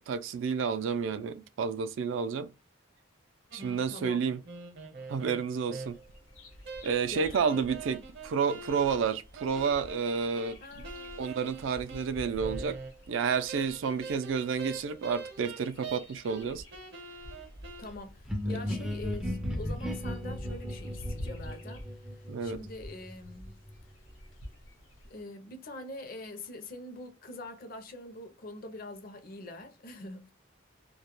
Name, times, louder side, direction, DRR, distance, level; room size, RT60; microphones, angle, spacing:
voice 1, 0.0-2.5 3.5-4.4 5.1-6.0 6.8-10.8 11.2-12.8 13.1-16.6 18.5-18.6 22.3-22.6, right 6 dB, 75° right, 0.4 m, -30 dB
sound 1, 3.5-6.2 6.6-13.2 13.5-16.5 16.7-17.8, right 4 dB, 55° right, 0.7 m, -44 dB
voice 2, 3.9-4.2 7.1-7.6 10.6-11.4 17.8-21.9 22.1-23.5 25.0-30.3, left 2 dB, 50° left, 0.5 m, -44 dB
Bird vocalization bird call bird song, 5.8-25.2, equal, 90° left, 0.9 m, -46 dB
sound 2, 18.3-23.9, left 1 dB, 5° right, 0.3 m, -37 dB
2.2 x 2.1 x 2.9 m
head